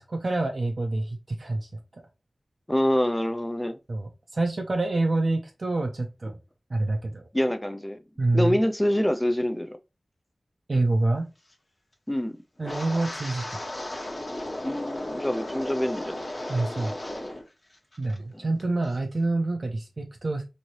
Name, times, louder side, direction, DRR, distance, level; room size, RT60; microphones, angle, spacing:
voice 1, 0.0-1.7 3.9-6.4 6.7-7.2 8.2-8.6 10.7-11.2 12.6-13.6 16.5-16.9 18.0-20.4, right 2 dB, 55° right, 0.5 m, -27 dB
voice 2, 2.7-3.8 7.3-8.0 8.3-9.8 12.1-12.4 14.6-16.2 18.3-18.4, equal, 10° left, 0.4 m, -26 dB
Wind, 12.6-17.5 17.7-18.2 18.6-18.9, left 1 dB, 35° left, 0.9 m, -35 dB
3.1 x 2.7 x 2.8 m
wide cardioid pair, 80°, 0 cm